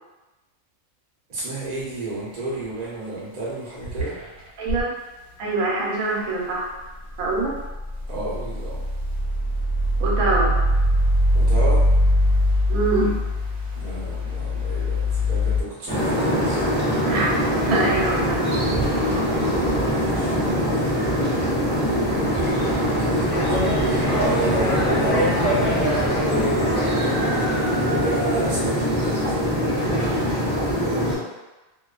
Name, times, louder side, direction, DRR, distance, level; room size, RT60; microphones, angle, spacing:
voice 1, 1.3-4.2 8.1-8.9 11.3-11.9 13.7-16.7 19.4-29.4, right 2 dB, 45° right, -6 dB, 0.6 m, -32 dB
sound 1, 1.6-1.9 2.2-2.8 3.2-3.3 3.8-4.8 6.9-15.6, left 1 dB, 60° right, 0.9 m, -22 dB
voice 2, 4.6-4.9 5.4-6.7 7.2-7.5 10.0-10.6 12.7-13.2 17.0-17.3 17.6-18.5, right 2 dB, 85° right, -4 dB, 1.0 m, -24 dB
sound 2, 15.9-31.2, equal, 5° right, 0.8 m, -23 dB
sound 3, 23.3-28.5, equal, 55° left, 0.6 m, -26 dB
2.4 x 2.2 x 2.3 m, 1.1 s
omnidirectional pair, 1.4 m